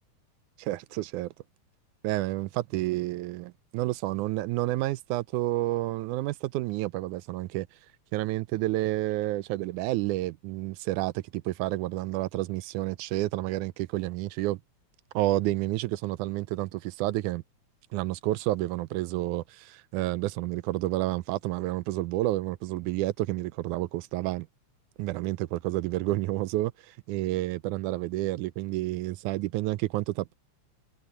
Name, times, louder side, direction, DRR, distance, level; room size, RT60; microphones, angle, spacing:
voice 1, 0.6-1.3 2.0-3.4 3.7-7.7 8.1-14.6 15.1-17.4 17.9-24.5 25.0-30.3, right 17 dB, 80° right, 1.9 m, -30 dB
omnidirectional pair, 3.7 m